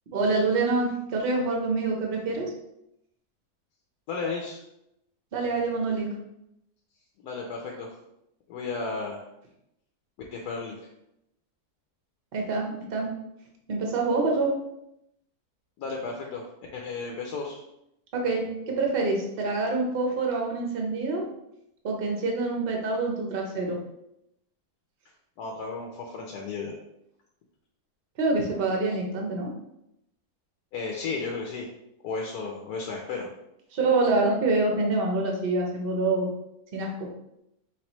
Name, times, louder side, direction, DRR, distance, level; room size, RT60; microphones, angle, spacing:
voice 1, 0.1-2.5 5.3-6.1 12.3-13.1 13.7-14.5 18.1-21.2 21.8-23.8 28.2-29.5 33.7-36.3 36.7-37.1, right 3 dB, 45° right, 0 dB, 0.9 m, -26 dB
voice 2, 4.1-4.6 7.2-8.0 8.5-9.2 10.3-10.8 15.8-16.5 16.7-17.6 25.4-26.7 30.7-31.7 32.0-33.3, left 4 dB, 80° left, 0 dB, 1.2 m, -33 dB
4.8 x 3.2 x 3.0 m, 0.82 s
omnidirectional pair, 1.6 m